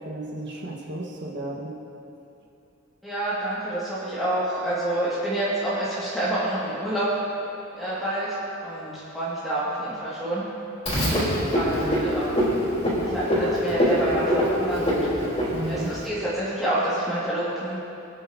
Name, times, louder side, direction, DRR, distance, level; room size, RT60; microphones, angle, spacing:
voice 1, 0.0-1.8 11.8-12.1 15.5-15.9, right 1 dB, 60° right, -3 dB, 1.3 m, -33 dB
voice 2, 3.0-7.1 7.7-10.5 11.5-12.6 13.0-15.1 15.7-17.8, right 1 dB, ahead, -13 dB, 1.9 m, -28 dB
Frog, 10.9-16.1, equal, 30° left, 3.3 m, -24 dB
24.5 x 9.1 x 2.7 m, 2.8 s
head